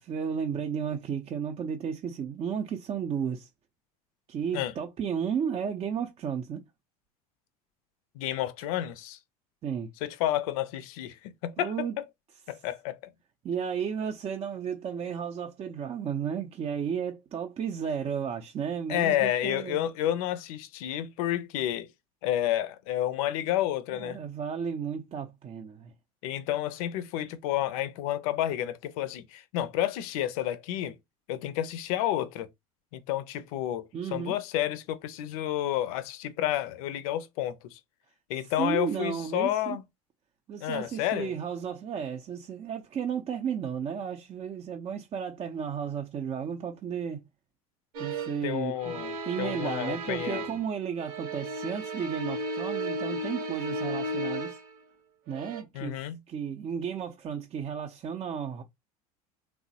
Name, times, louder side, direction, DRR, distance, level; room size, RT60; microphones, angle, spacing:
voice 1, 0.0-3.5 4.3-6.6 9.6-9.9 11.6-12.0 13.4-19.9 23.9-25.9 33.9-34.3 38.4-39.8 40.5-47.2 48.0-54.6 55.3-58.6, right 7 dB, 30° right, 0.4 m, -33 dB
voice 2, 8.2-9.2 10.0-11.2 11.4-12.0 12.5-13.0 18.9-21.9 22.2-24.2 26.2-31.0 31.3-32.5 32.9-37.8 38.3-39.8 40.6-41.3 48.4-50.4 55.7-56.2, left 12 dB, 70° left, 0.5 m, -30 dB
sound 1, 47.9-48.5 48.8-50.7 51.0-54.8 55.3-55.6, right 1 dB, 75° right, 0.9 m, -34 dB
3.0 x 2.0 x 2.7 m
hypercardioid pair, 90°, 19 cm